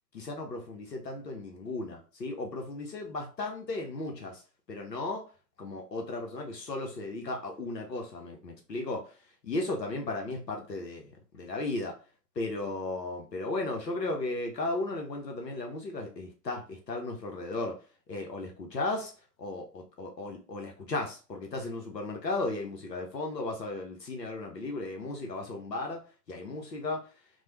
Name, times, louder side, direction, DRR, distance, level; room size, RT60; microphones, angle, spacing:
voice 1, 0.1-4.4 4.7-5.2 5.6-9.0 9.4-11.1 11.3-11.9 12.4-17.8 18.1-19.1 19.4-27.1, left 2 dB, 85° left, 2 dB, 0.7 m, -35 dB
3.0 x 2.1 x 2.9 m, 0.36 s
figure-of-eight pair, 95°, 49 cm